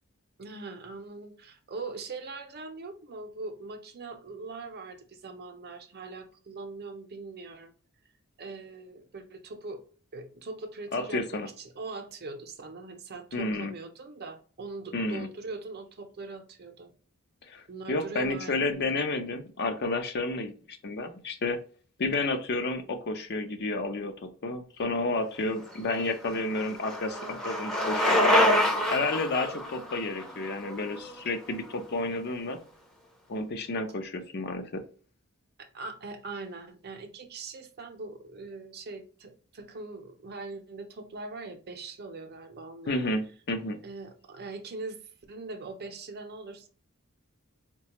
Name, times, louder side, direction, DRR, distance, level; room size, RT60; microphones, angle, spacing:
voice 1, 0.4-7.7 8.4-9.8 10.1-16.9 17.7-19.0 35.6-43.0 43.8-45.0 45.3-46.7, right 3 dB, 45° right, 6 dB, 0.6 m, -41 dB
voice 2, 10.9-11.5 13.3-13.7 14.9-15.3 17.5-21.6 22.0-28.3 28.9-32.6 33.3-34.9 42.9-43.8, left 2 dB, 50° left, 7 dB, 0.5 m, -31 dB
Bicycle, 25.7-31.7, left 1 dB, 5° left, 0.6 m, -27 dB
4.0 x 2.2 x 2.9 m, 0.39 s
head